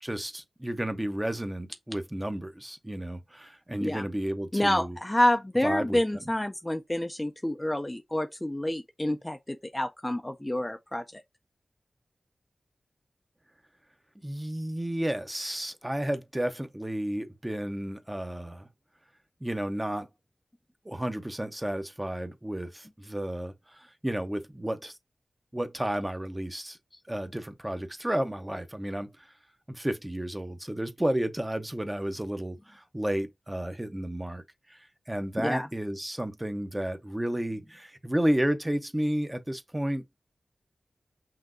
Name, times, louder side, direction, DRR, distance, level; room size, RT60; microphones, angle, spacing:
voice 1, 0.0-5.0 5.6-6.0 14.2-18.7 19.4-20.1 20.8-25.0 25.5-26.8 27.1-29.1 29.7-34.4 34.7-40.2, right 1 dB, 15° right, 0.7 m, -32 dB
voice 2, 4.5-11.2 35.4-35.7, left 1 dB, 15° left, 0.4 m, -28 dB
5.7 x 2.6 x 2.5 m
wide cardioid pair, 65°, 0 cm